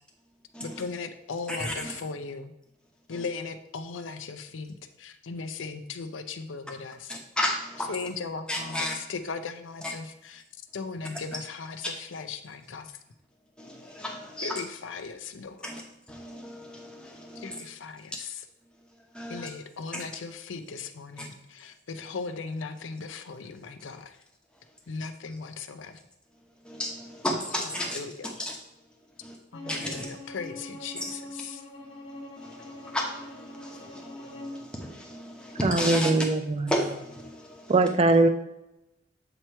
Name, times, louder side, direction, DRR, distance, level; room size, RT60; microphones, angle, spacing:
voice 1, 0.6-2.5 3.1-7.2 7.9-10.4 10.7-13.0 14.4-15.7 17.4-18.5 19.3-24.2 24.9-26.0 27.6-28.4 29.5-31.6, left 4 dB, 85° left, 8 dB, 0.5 m, -38 dB
voice 2, 1.5-1.9 7.1-7.9 8.5-8.9 9.8-9.9 13.6-14.6 15.6-15.8 16.1-17.6 19.1-19.5 19.9-20.0 21.2-21.3 26.6-28.0 28.4-28.5 29.2-29.4 29.7-30.1 31.0-31.1 32.4-36.1 36.7-37.7, left 1 dB, 5° left, -1 dB, 0.9 m, -33 dB
Bowed string instrument, 29.5-34.6, left 1 dB, 30° left, 1.0 m, -43 dB
voice 3, 35.6-36.7 37.7-38.3, right 2 dB, 30° right, 8 dB, 0.4 m, -21 dB
7.7 x 3.0 x 4.4 m, 0.89 s
head